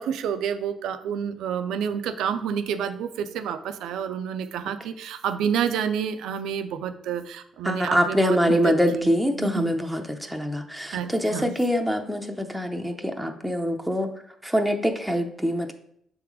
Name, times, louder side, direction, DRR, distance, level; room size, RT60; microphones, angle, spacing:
voice 1, 0.0-9.7 10.9-11.5, right 8 dB, 85° right, 10 dB, 0.5 m, -29 dB
voice 2, 7.6-14.1 14.4-15.7, equal, ahead, 3 dB, 0.7 m, -24 dB
6.7 x 3.6 x 4.7 m, 0.69 s
cardioid pair, 90°, 0 cm